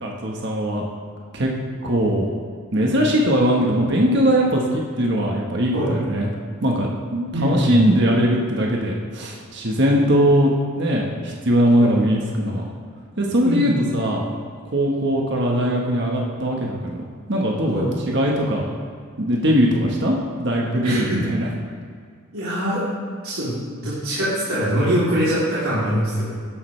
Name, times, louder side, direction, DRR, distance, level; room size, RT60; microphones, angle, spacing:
voice 1, 0.0-0.8 1.3-1.5 1.8-2.3 2.7-6.3 6.6-12.6 13.2-14.2 14.7-17.0 17.3-18.7 19.2-21.5, equal, 55° right, -1 dB, 1.3 m, -20 dB
voice 2, 7.3-7.9 11.8-12.0 13.4-13.8 17.7-17.9 20.8-21.2 22.3-22.9 23.2-26.3, equal, 85° right, -11 dB, 3.1 m, -23 dB
13.5 x 11.0 x 3.3 m, 2.1 s
head